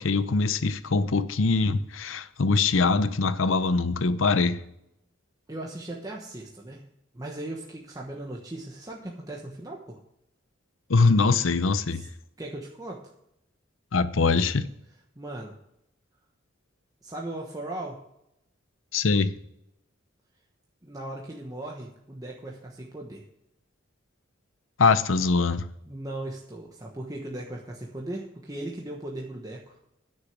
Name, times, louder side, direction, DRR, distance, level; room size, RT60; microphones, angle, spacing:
voice 1, 0.0-4.6 10.9-12.0 13.9-14.7 18.9-19.3 24.8-25.6, left 4 dB, 70° left, 0.7 m, -23 dB
voice 2, 5.5-6.8 7.1-10.0 11.9-12.1 12.4-13.0 15.2-15.5 17.0-18.0 20.8-23.2 25.9-29.8, right 1 dB, 20° right, 1.2 m, -38 dB
10.0 x 6.3 x 7.3 m
head